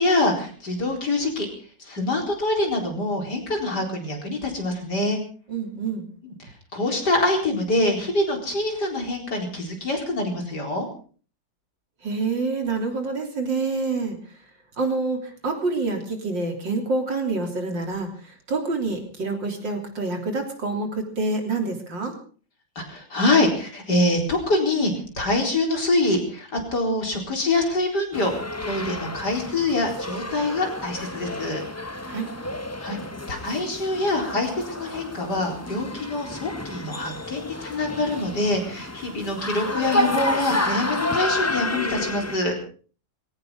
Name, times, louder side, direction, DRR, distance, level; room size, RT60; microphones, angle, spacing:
voice 1, 0.0-1.5 1.8-5.2 6.2-6.3 6.7-10.9 22.8-28.3 28.6-31.6 32.8-33.0 33.3-42.5, left 2 dB, 60° left, 2 dB, 4.9 m, -25 dB
voice 2, 5.5-6.0 12.0-14.2 14.8-22.2 32.1-32.3, right 3 dB, 75° right, 3 dB, 4.1 m, -27 dB
sound 1, 28.1-42.4, left 1 dB, 15° left, 0.5 m, -30 dB
21.0 x 17.0 x 3.9 m, 0.40 s
omnidirectional pair, 2.0 m